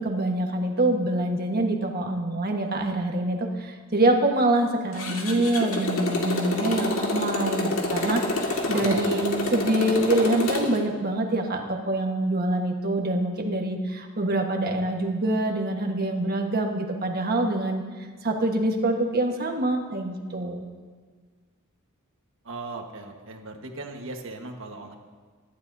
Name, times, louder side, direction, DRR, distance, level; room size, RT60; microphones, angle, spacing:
voice 1, 0.0-17.8 18.2-20.6, right 1 dB, 45° right, 3 dB, 1.4 m, -25 dB
Motorcycle, 4.9-10.8, left 2 dB, 65° left, 2.1 m, -28 dB
voice 2, 8.7-9.3 22.4-25.0, right 2 dB, 60° right, 3 dB, 1.4 m, -38 dB
24.0 x 11.5 x 2.7 m, 1.5 s
head